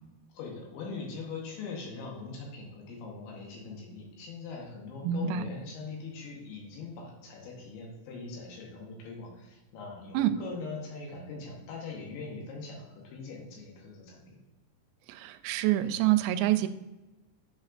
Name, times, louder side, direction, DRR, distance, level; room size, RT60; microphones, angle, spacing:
voice 1, 0.3-14.4, left 4 dB, 75° left, -1 dB, 3.1 m, -42 dB
voice 2, 5.0-5.4 10.1-10.3 15.1-16.7, right 12 dB, 90° right, 9 dB, 3.2 m, -26 dB
10.0 x 5.2 x 2.5 m, 1.1 s
omnidirectional pair, 5.9 m